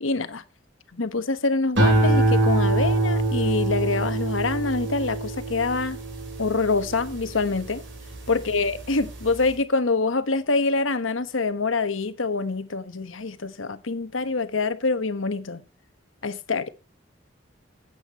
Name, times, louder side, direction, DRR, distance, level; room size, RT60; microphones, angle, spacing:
voice 1, 0.0-0.4 0.9-6.0 6.4-7.8 8.3-15.6 16.2-16.7, left 3 dB, 90° left, 1.2 m, -25 dB
sound 1, 1.8-8.3 8.8-9.2, right 2 dB, 70° right, 4.8 m, -24 dB
14.0 x 8.7 x 3.0 m
head